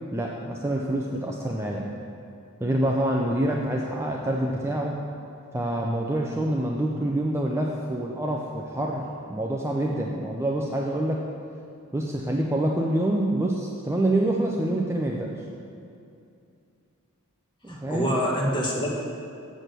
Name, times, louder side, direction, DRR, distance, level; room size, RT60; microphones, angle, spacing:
voice 1, 0.1-1.9 2.6-5.0 5.5-9.0 9.3-11.2 11.9-15.3 17.6-18.1, right 1 dB, 10° right, -1 dB, 0.5 m, -26 dB
voice 2, 17.7-18.9, equal, 20° left, -3 dB, 1.5 m, -26 dB
7.6 x 6.3 x 6.7 m, 2.5 s
head